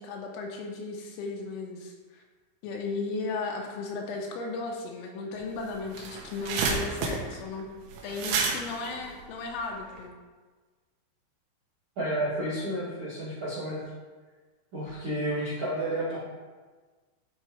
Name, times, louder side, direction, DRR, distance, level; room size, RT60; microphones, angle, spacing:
voice 1, 0.0-2.2 2.6-7.7 8.0-10.1, left 3 dB, 80° left, 1 dB, 3.0 m, -35 dB
sound 1, 5.4-5.5 5.7-10.0, right 4 dB, 80° right, 3.2 m, -31 dB
voice 2, 11.9-13.8 14.7-16.2, right 1 dB, 55° right, -11 dB, 1.5 m, -31 dB
12.5 x 4.7 x 3.1 m, 1.4 s
omnidirectional pair, 5.9 m